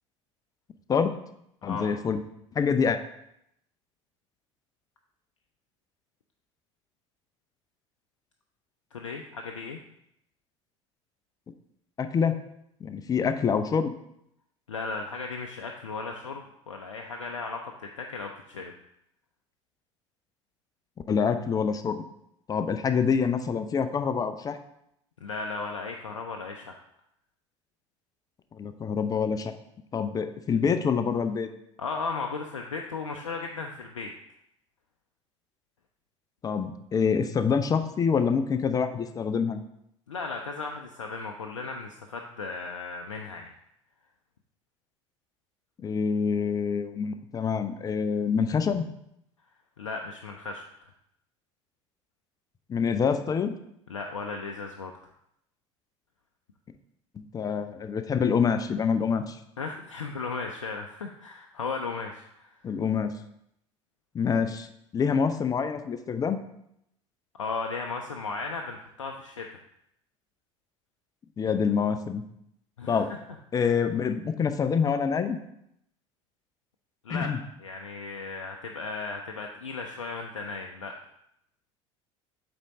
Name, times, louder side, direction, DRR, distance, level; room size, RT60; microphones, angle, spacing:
voice 1, 1.6-2.2 2.5-3.0 12.0-12.4 12.8-13.9 21.1-22.0 22.5-24.6 28.5-29.5 29.9-31.5 36.4-39.6 45.8-48.9 52.7-53.6 57.2-59.4 62.6-63.1 64.1-64.7 64.9-66.4 71.4-72.2 72.9-73.1 73.5-75.4 77.1-77.4, left 6 dB, 25° left, 9 dB, 0.5 m, -26 dB
voice 2, 8.9-9.8 14.7-18.7 25.2-26.8 31.8-34.1 40.1-43.5 49.8-50.9 53.9-55.0 59.6-62.8 67.4-69.5 72.8-73.2 73.6-73.7 77.0-80.9, left 4 dB, 75° left, 3 dB, 0.5 m, -36 dB
8.2 x 3.5 x 4.0 m, 0.77 s
figure-of-eight pair, 65°, 16 cm